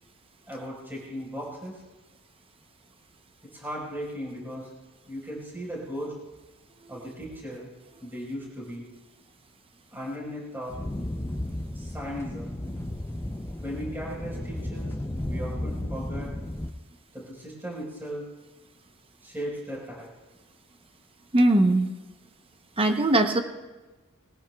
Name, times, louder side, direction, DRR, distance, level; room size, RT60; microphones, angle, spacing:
voice 1, 0.5-1.8 3.4-4.7 5.1-6.1 6.9-7.7 8.0-8.9 9.9-10.8 11.7-12.6 13.6-16.3 17.1-18.3 19.2-20.1, equal, 10° right, -4 dB, 4.6 m, -37 dB
sound 1, 10.7-16.7, left 1 dB, 10° left, 0.6 m, -34 dB
voice 2, 21.3-21.9 22.8-23.4, right 1 dB, 25° right, 6 dB, 0.8 m, -20 dB
21.5 x 19.0 x 2.3 m, 1.2 s
head